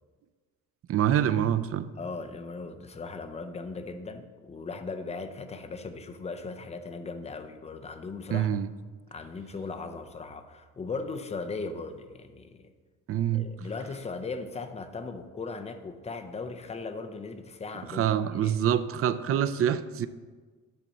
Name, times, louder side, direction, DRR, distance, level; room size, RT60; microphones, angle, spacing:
voice 1, 0.9-1.9 8.3-8.7 13.1-13.5 17.9-20.1, right 10 dB, 50° right, 13 dB, 0.4 m, -26 dB
voice 2, 2.0-8.6 9.1-12.7 13.3-18.6, left 4 dB, 20° left, 7 dB, 0.5 m, -38 dB
10.5 x 4.1 x 6.6 m, 1.4 s
cardioid pair, 160°, 30 cm